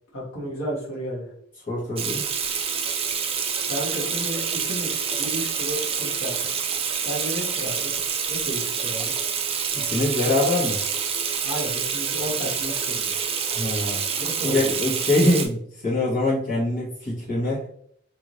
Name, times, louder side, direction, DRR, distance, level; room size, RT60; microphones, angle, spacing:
voice 1, 0.1-1.3 3.7-6.5 7.0-8.0 8.3-9.1 11.4-13.2 14.2-14.7, equal, 75° left, -3 dB, 1.3 m, -33 dB
voice 2, 1.7-2.2 9.7-10.8 13.5-14.0 14.4-17.6, left 1 dB, 45° left, -9 dB, 1.2 m, -24 dB
Water tap faucet / Sink (filling or washing), 2.0-15.5, right 6 dB, 30° right, 0.4 m, -27 dB
3.1 x 2.7 x 2.6 m, 0.66 s
head